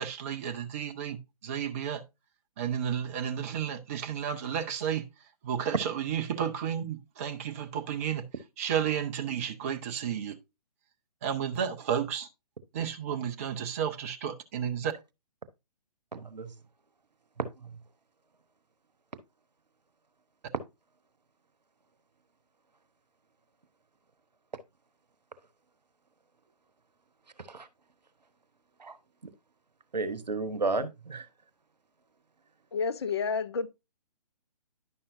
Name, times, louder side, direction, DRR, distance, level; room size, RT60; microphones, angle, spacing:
voice 1, 0.0-2.0 2.6-5.1 5.4-8.2 8.6-10.4 11.2-12.3 12.7-14.9, right 8 dB, 20° right, 0.4 m, -32 dB
voice 2, 16.1-16.5 17.4-17.7 27.5-27.7 28.8-29.0 29.2-29.3 29.9-31.3, right 3 dB, 80° right, 0.9 m, -33 dB
voice 3, 32.7-33.7, left 5 dB, 40° left, 0.4 m, -30 dB
10.0 x 5.5 x 2.5 m
figure-of-eight pair, 135°, 21 cm